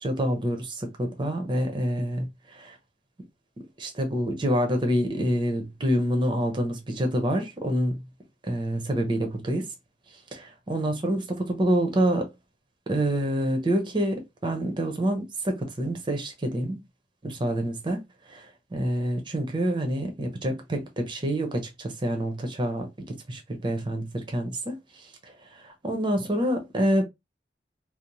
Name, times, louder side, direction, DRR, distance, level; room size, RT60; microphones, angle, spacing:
voice 1, 0.0-2.8 3.8-8.0 8.5-9.7 10.3-12.3 12.9-16.8 17.2-18.0 18.3-18.5 18.7-24.8 25.5-27.0, equal, 25° right, 0.6 m, -27 dB
2.6 x 2.0 x 2.9 m
head